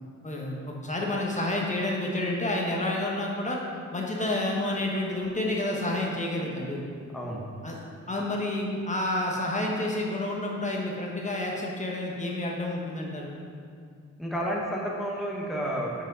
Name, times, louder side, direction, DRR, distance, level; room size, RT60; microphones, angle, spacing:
voice 1, 0.2-3.6 3.9-6.8 7.6-7.8 8.1-13.4, left 1 dB, 25° left, -2 dB, 1.0 m, -29 dB
voice 2, 7.1-7.5 14.2-16.0, equal, ahead, -3 dB, 1.0 m, -31 dB
6.1 x 5.1 x 5.4 m, 2.2 s
cardioid pair, 100°, 30 cm